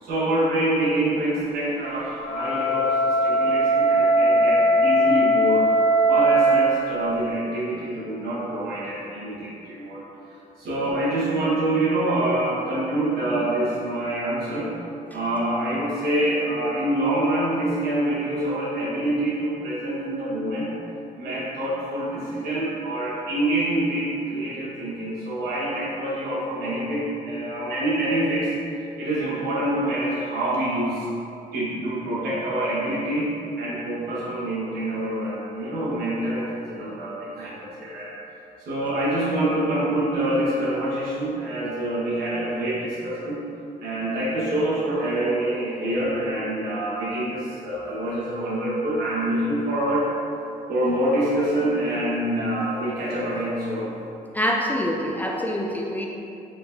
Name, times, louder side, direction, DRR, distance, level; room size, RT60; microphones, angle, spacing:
voice 1, 0.0-5.7 6.1-10.0 10.6-14.7 15.1-20.7 21.2-28.5 29.0-31.1 31.5-38.1 38.6-43.4 43.8-50.1 50.7-53.9, right 1 dB, 75° right, -8 dB, 1.3 m, -26 dB
Wind instrument woodwind instrument, 2.1-6.8, right 1 dB, 35° left, 0.8 m, -19 dB
voice 2, 54.3-56.1, equal, 10° left, -1 dB, 0.3 m, -25 dB
4.4 x 3.9 x 2.6 m, 2.7 s
cardioid pair, 125°, 16 cm